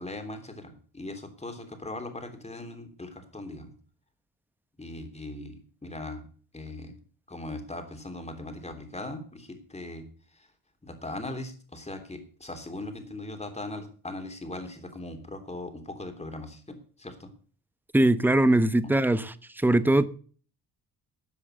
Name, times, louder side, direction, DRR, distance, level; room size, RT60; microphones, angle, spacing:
voice 1, 0.0-3.7 4.8-6.2 6.5-6.9 7.3-10.0 10.8-17.3 18.8-18.9, left 2 dB, 15° left, 3.3 m, -39 dB
voice 2, 17.9-19.3 19.6-20.1, right 1 dB, 5° right, 0.9 m, -21 dB
13.0 x 7.7 x 6.6 m
cardioid pair, 90°, 38 cm